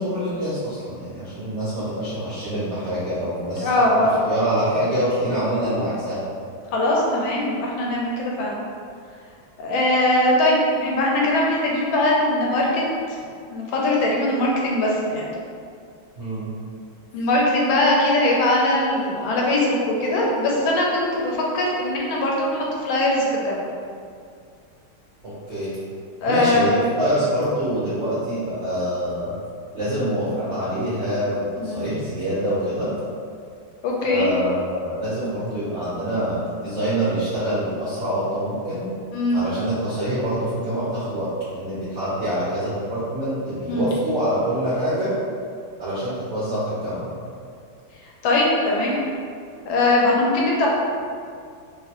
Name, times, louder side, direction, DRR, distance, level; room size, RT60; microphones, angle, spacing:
voice 1, 0.0-3.8 4.3-6.2 16.2-16.5 25.2-25.7 26.3-29.3 29.7-32.9 34.0-38.8 39.3-45.1 45.8-47.1, equal, 65° right, -11 dB, 0.6 m, -25 dB
voice 2, 3.6-4.2 6.7-8.6 9.6-13.2 13.5-15.3 17.1-23.7 26.2-26.8 31.6-31.9 33.8-34.3 39.1-39.4 43.7-43.9 48.2-49.0 49.6-50.7, left 1 dB, 75° left, -3 dB, 1.3 m, -21 dB
3.2 x 2.9 x 2.9 m, 2.3 s
omnidirectional pair, 2.3 m